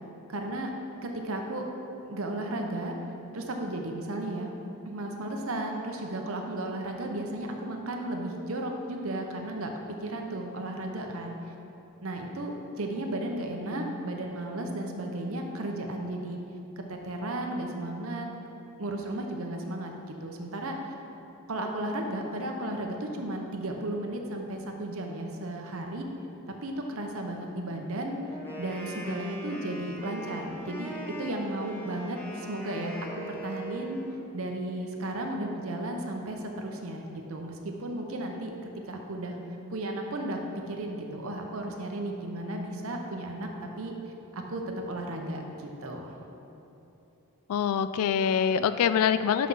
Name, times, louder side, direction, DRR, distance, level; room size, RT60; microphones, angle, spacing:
voice 1, 0.3-0.7 1.0-1.7 2.0-3.0 3.3-4.5 4.9-11.4 12.0-16.4 16.8-18.3 18.8-20.9 21.5-26.1 26.6-28.2 28.6-34.0 34.3-39.4 39.7-43.9 44.3-46.1, right 1 dB, 70° right, 2 dB, 0.8 m, -34 dB
Wind instrument woodwind instrument, 28.3-34.2, equal, 10° left, 0.7 m, -41 dB
voice 2, 47.5-49.5, left 7 dB, 80° left, 13 dB, 0.3 m, -25 dB
6.2 x 5.9 x 5.5 m, 3.0 s
head